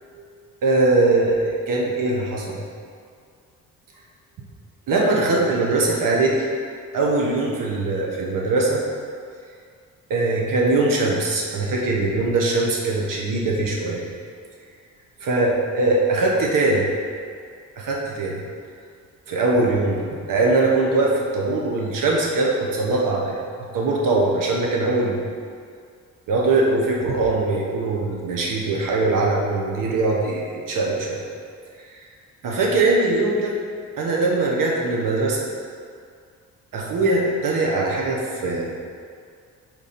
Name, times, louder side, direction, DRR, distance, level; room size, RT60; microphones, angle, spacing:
voice 1, 0.6-2.6 4.9-6.4 6.9-8.8 10.1-14.0 15.2-16.8 17.8-18.4 19.3-23.4 23.7-25.3 26.3-31.2 32.4-33.6 34.0-35.4 36.7-38.7, right 2 dB, 70° right, -2 dB, 1.2 m, -21 dB
5.4 x 4.6 x 4.3 m, 2.2 s
cardioid pair, 95°, 33 cm